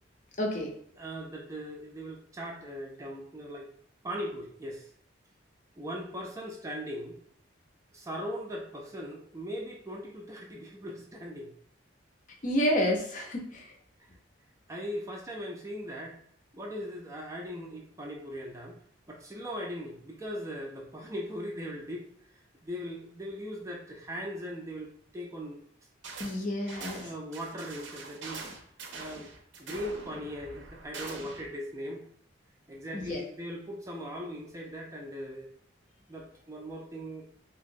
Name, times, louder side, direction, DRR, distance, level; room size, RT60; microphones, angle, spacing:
voice 1, 0.4-0.7 12.4-13.7 26.2-27.1 32.9-33.2, equal, 40° left, 2 dB, 0.5 m, -29 dB
voice 2, 1.0-3.7 4.0-4.9 5.8-7.2 7.9-11.5 14.7-16.2 16.5-18.8 19.1-25.6 27.0-28.5 28.9-29.3 29.6-32.0 32.7-35.5 36.1-37.3, equal, 15° right, 0 dB, 0.4 m, -39 dB
sound 1, 26.0-26.4 26.7-31.5, right 4 dB, 70° right, 0.6 m, -44 dB
3.2 x 2.8 x 2.6 m, 0.64 s
head